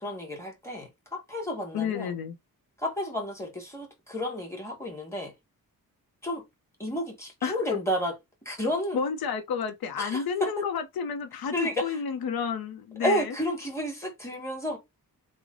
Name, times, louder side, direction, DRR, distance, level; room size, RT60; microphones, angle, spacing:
voice 1, 0.0-2.1 2.8-5.3 6.2-6.4 6.8-8.1 8.4-9.0 10.0-10.6 11.5-11.9 13.0-14.8, equal, 10° left, 1.3 m, -31 dB
voice 2, 1.7-2.4 7.4-7.6 8.9-13.3, left 6 dB, 85° left, 0.6 m, -31 dB
3.2 x 2.1 x 3.6 m
wide cardioid pair, 115°, 35 cm